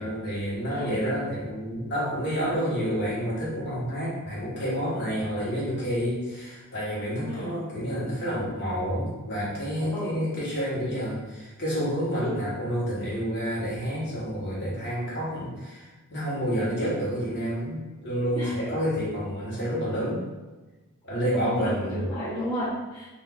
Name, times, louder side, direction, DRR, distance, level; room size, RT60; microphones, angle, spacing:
voice 1, 0.0-20.3 21.0-22.1, equal, 50° left, -8 dB, 1.2 m, -29 dB
voice 2, 7.3-7.6 9.9-10.2 18.4-18.7 21.8-23.1, equal, 20° left, -10 dB, 0.6 m, -33 dB
3.5 x 2.5 x 2.3 m, 1.2 s
head